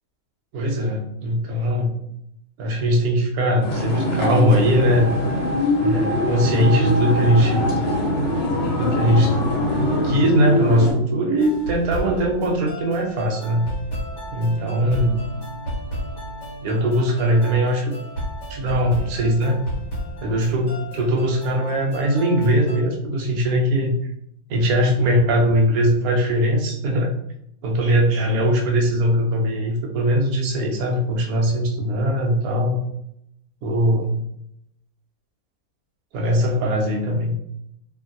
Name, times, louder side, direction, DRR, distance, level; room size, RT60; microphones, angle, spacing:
voice 1, 0.5-1.9 2.6-5.2 5.8-7.6 8.8-9.4 10.0-13.7 14.3-15.2 16.6-18.0 18.5-19.6 20.2-24.0 24.5-27.1 27.6-32.8 33.6-34.2 36.1-37.4, equal, 70° right, 1 dB, 1.1 m, -20 dB
sound 1, 3.6-10.9, left 1 dB, 80° left, 1.3 m, -22 dB
sound 2, 11.4-22.8, equal, 60° left, 1.5 m, -33 dB
2.9 x 2.6 x 2.5 m, 0.76 s
omnidirectional pair, 1.6 m